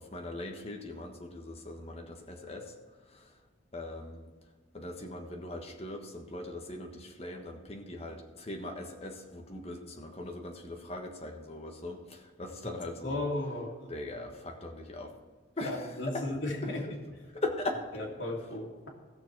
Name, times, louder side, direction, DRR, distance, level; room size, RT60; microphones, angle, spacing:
voice 1, 0.0-3.4 3.7-4.3 4.7-13.3 13.9-15.2 15.6-16.3 16.6-16.8 17.3-17.9, left 2 dB, 35° left, 2 dB, 1.3 m, -40 dB
voice 2, 13.0-13.7 15.6-16.8 17.9-18.9, left 1 dB, 75° left, -2 dB, 2.6 m, -35 dB
15.5 x 7.0 x 4.6 m, 1.5 s
head